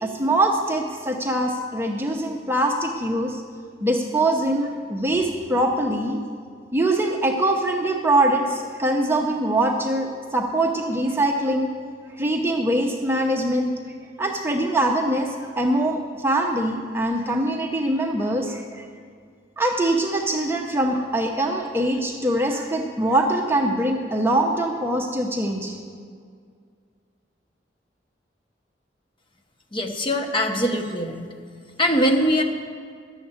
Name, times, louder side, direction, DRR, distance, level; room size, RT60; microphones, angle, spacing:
voice 1, 0.0-3.4 3.8-6.2 6.7-11.7 12.1-13.7 14.2-18.9 19.6-25.8, right 1 dB, 15° right, 1 dB, 0.8 m, -23 dB
voice 2, 29.7-31.3 31.8-32.4, equal, 30° left, 3 dB, 1.1 m, -22 dB
11.5 x 7.2 x 8.6 m, 2.1 s
head